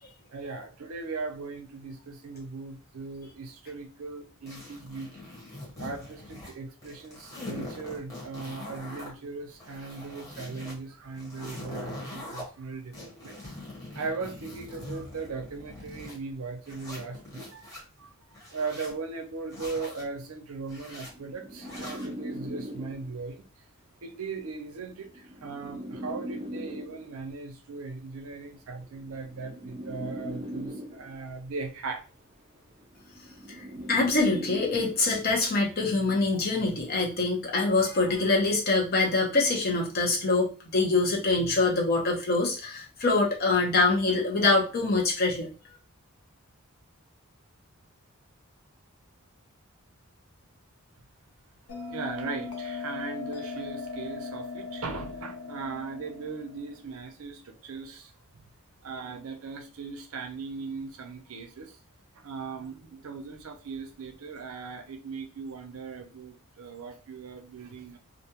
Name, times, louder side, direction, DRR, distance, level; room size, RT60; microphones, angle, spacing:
voice 1, 0.3-5.3 5.8-13.4 14.0-18.1 18.5-23.4 24.0-25.1 25.4-32.0 36.3-36.4 51.9-58.1 58.8-61.7 62.2-68.0, right 4 dB, 75° right, 5 dB, 0.5 m, -38 dB
fermetures eclair long, 4.5-6.5 6.8-9.1 9.5-10.7 11.1-12.4 12.9-16.2 16.6-17.8 18.3-18.9 19.5-20.0 20.6-21.1 21.6-22.1, left 1 dB, 15° left, 1.0 m, -42 dB
weird feedback loop, 21.0-23.3 24.3-27.3 28.3-31.3 32.3-35.3, equal, 20° right, 0.4 m, -40 dB
voice 2, 33.9-45.5, left 3 dB, 45° left, -1 dB, 0.8 m, -24 dB
Bell, 51.7-56.8, left 4 dB, 80° left, 0.5 m, -38 dB
2.5 x 2.2 x 2.8 m, 0.35 s
head